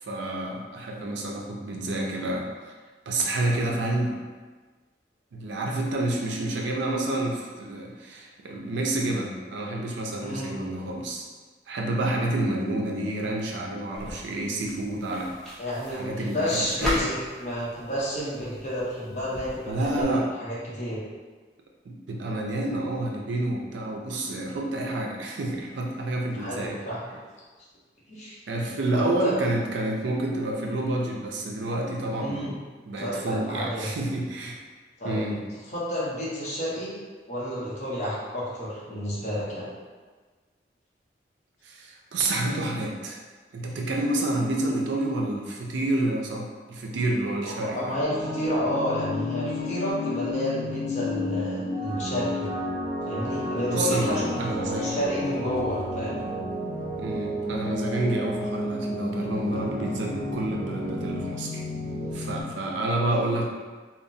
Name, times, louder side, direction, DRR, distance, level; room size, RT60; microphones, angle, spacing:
voice 1, 0.0-2.7 3.1-4.2 5.3-11.2 11.7-15.3 15.9-17.0 19.7-20.3 21.9-26.8 28.5-32.5 32.8-34.6 35.0-35.4 41.6-43.2 43.5-47.9 53.7-55.0 57.0-61.6 62.1-63.5, right 1 dB, 80° right, 0 dB, 0.4 m, -29 dB
voice 2, 10.2-10.5 15.6-21.0 26.3-27.2 28.1-28.4 28.9-29.3 32.2-32.5 33.0-33.9 35.0-35.2 35.7-37.0 37.3-39.7 47.4-52.5 53.0-56.2, equal, 40° left, -7 dB, 0.7 m, -30 dB
sound 1, 13.9-20.0, equal, ahead, 0.6 m, -37 dB
sound 2, 48.0-62.4, left 1 dB, 50° right, 0.9 m, -31 dB
2.8 x 2.0 x 2.6 m, 1.4 s
head